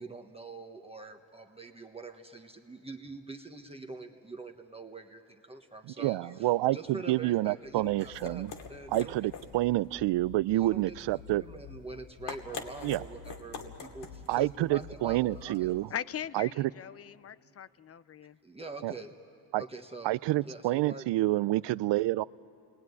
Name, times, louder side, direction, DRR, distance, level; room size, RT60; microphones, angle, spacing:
voice 1, 0.0-9.2 10.6-15.8 18.4-19.1 19.5-20.1 20.4-21.1, right 3 dB, 15° right, 1.3 m, -45 dB
voice 2, 5.9-8.5 8.9-11.4 12.8-13.0 14.3-15.9 16.3-16.7 18.8-18.9 19.5-19.6 20.0-22.2, right 17 dB, 70° right, 0.5 m, -28 dB
sound 1, 7.6-15.8, left 5 dB, 70° left, 2.5 m, -46 dB
voice 3, 15.9-18.4, left 9 dB, 35° left, 0.5 m, -40 dB
29.5 x 21.0 x 9.6 m
cardioid pair, 110°, 44 cm